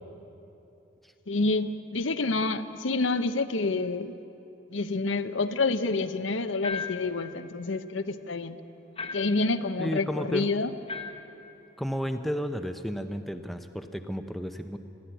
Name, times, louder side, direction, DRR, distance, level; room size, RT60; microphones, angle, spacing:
voice 1, 1.3-4.2 4.7-8.6 9.1-10.7, left 3 dB, 85° left, 10 dB, 0.8 m, -28 dB
sound 1, 6.6-7.2 9.0-9.5 10.9-11.3, left 5 dB, 30° left, 1.0 m, -36 dB
voice 2, 9.8-10.5 11.8-14.8, equal, ahead, 7 dB, 0.7 m, -32 dB
21.5 x 14.0 x 9.0 m, 2.9 s
head